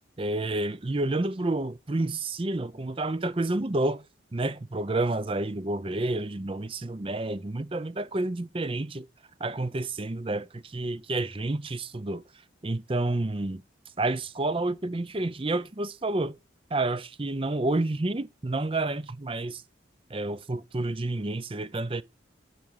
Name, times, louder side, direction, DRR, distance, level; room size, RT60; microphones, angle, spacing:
voice 1, 0.2-4.0 4.3-9.1 9.4-12.2 12.6-13.6 14.0-16.3 16.7-19.6 20.1-22.0, right 2 dB, 30° right, 0.5 m, -29 dB
10.5 x 4.5 x 6.5 m
head